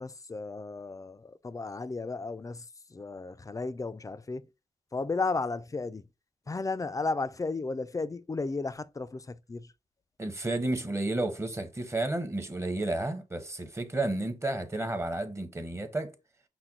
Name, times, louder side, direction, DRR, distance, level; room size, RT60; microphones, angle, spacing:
voice 1, 0.0-4.5 4.9-6.0 6.5-9.7, left 3 dB, 25° left, 0.4 m, -34 dB
voice 2, 10.2-16.1, right 2 dB, 20° right, 0.9 m, -32 dB
5.8 x 2.1 x 3.8 m
cardioid pair, 75°, 14 cm